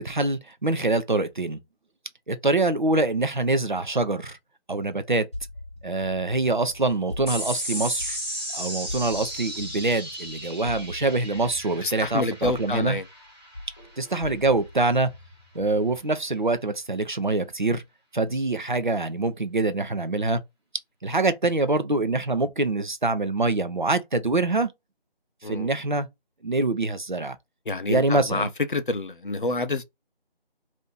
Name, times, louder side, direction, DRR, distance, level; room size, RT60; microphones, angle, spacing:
voice 1, 0.0-1.6 2.3-4.4 4.7-5.3 5.8-8.2 8.5-13.0 14.0-15.1 15.5-17.8 18.1-20.4 21.0-24.7 25.4-26.1 26.4-27.4 27.9-28.5, right 2 dB, 50° right, 0.6 m, -25 dB
sound 1, 5.3-8.4 8.9-13.3 13.5-16.0, left 1 dB, 30° left, 1.0 m, -42 dB
sound 2, 7.3-14.0, equal, 25° right, 1.2 m, -35 dB
voice 2, 11.8-13.0 25.4-25.7 27.7-29.8, left 2 dB, 55° left, 0.6 m, -28 dB
2.8 x 2.6 x 3.7 m
figure-of-eight pair, 170°, 31 cm